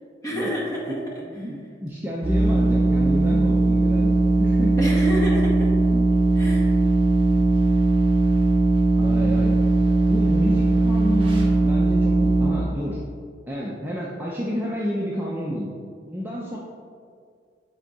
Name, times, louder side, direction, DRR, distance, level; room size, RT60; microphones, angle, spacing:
voice 1, 0.2-1.0 4.8-5.7 6.4-6.7, equal, 20° left, -4 dB, 1.3 m, -28 dB
voice 2, 0.9-4.9 9.0-9.6 10.1-13.0 13.5-15.7 16.0-16.6, equal, 10° right, -5 dB, 0.5 m, -30 dB
sound 1, 2.2-12.5, right 2 dB, 30° right, 1.0 m, -19 dB
7.9 x 3.7 x 4.0 m, 2.1 s
head